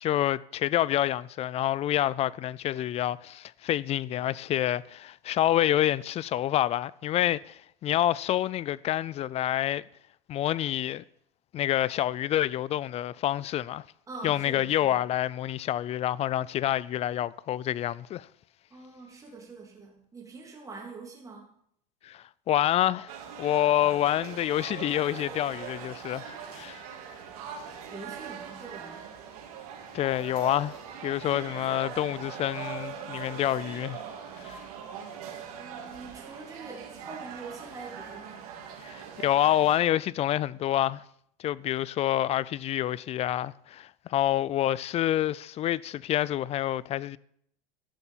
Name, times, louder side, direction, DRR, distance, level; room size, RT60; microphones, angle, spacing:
voice 1, 0.0-9.8 10.3-11.0 11.5-13.8 14.2-18.3 22.0-26.8 29.9-30.8 31.0-34.0 34.4-34.6 38.8-41.0 41.4-47.2, left 12 dB, 35° left, 0.4 m, -27 dB
voice 2, 14.1-15.0 18.7-21.5 27.9-29.1 35.5-38.5, right 3 dB, 20° right, 3.0 m, -44 dB
sound 1, 23.1-39.8, right 7 dB, 80° right, 3.1 m, -41 dB
12.5 x 6.8 x 7.4 m
supercardioid pair, 115°, 18 cm